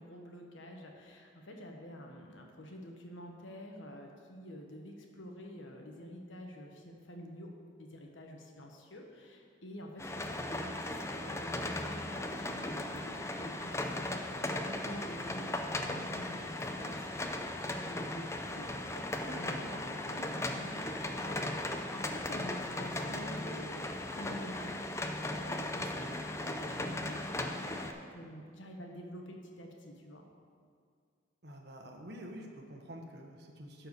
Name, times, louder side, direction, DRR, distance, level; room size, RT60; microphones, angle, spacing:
voice 1, 0.0-7.5 7.8-21.6 21.9-30.2, equal, 90° left, 1 dB, 1.3 m, -48 dB
sound 1, 10.0-27.9, left 1 dB, 15° left, 0.5 m, -37 dB
voice 2, 31.4-33.9, equal, 60° right, 2 dB, 1.2 m, -48 dB
12.0 x 4.5 x 6.8 m, 2.1 s
head